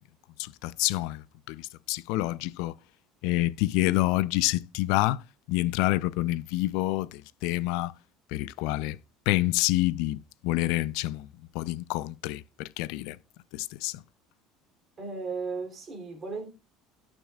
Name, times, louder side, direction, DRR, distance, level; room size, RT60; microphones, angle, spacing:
voice 1, 0.4-2.7 3.2-5.2 5.5-7.9 8.3-9.0 9.3-11.3 11.5-13.2 13.5-14.0, left 17 dB, 65° left, 0.5 m, -28 dB
voice 2, 15.0-16.5, right 4 dB, 20° right, 3.1 m, -35 dB
18.5 x 6.2 x 2.4 m
cardioid pair, 175°, 0 cm